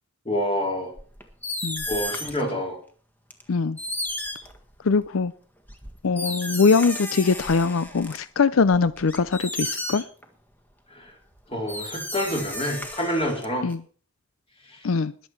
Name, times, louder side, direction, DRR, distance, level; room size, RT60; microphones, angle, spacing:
voice 1, 0.3-0.9 1.9-2.8 10.9-11.1 11.5-13.7 14.6-14.8, equal, 30° left, 3.9 m, -27 dB
sound 1, 1.0-2.5 3.3-3.4 3.8-5.1 5.7-8.2 8.6-10.2 11.3-11.4 11.7-13.7, left 1 dB, 10° left, 1.7 m, -33 dB
voice 2, 4.8-5.3 6.0-10.1 13.6-13.8 14.8-15.1, left 4 dB, 90° left, 0.6 m, -22 dB
21.0 x 7.7 x 4.6 m
head